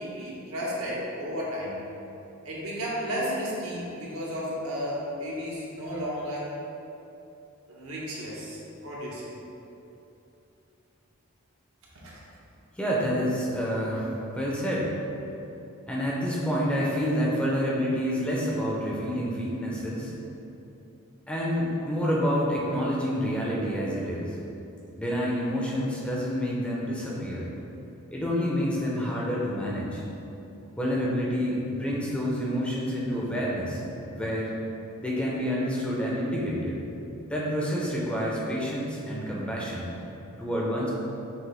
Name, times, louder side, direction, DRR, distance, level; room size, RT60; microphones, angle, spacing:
voice 1, 0.0-1.8 2.4-6.6 7.7-9.3 12.0-12.2, equal, 75° right, -6 dB, 1.0 m, -33 dB
voice 2, 12.8-14.9 15.9-20.1 21.3-24.3 25.0-27.5 28.1-30.0 30.8-33.8 34.1-34.5 35.0-36.7 37.3-39.9 40.4-40.9, equal, 5° left, -5 dB, 0.6 m, -28 dB
6.0 x 2.5 x 3.3 m, 2.9 s
head